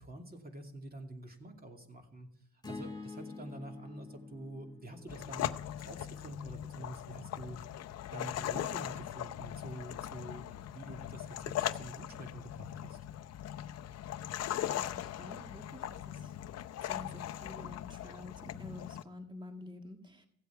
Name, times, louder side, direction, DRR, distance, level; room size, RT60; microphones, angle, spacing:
voice 1, 0.0-2.3 2.7-7.6 8.1-13.0, right 1 dB, 30° right, 3 dB, 2.5 m, -47 dB
sound 1, 2.6-6.9, left 3 dB, 15° left, 1.8 m, -48 dB
sound 2, 5.1-19.0, left 12 dB, 60° left, 0.6 m, -40 dB
voice 2, 14.7-16.3 16.8-20.3, left 1 dB, 15° right, 5 dB, 1.7 m, -49 dB
15.5 x 8.1 x 4.6 m, 0.75 s
cardioid pair, 90°, 30 cm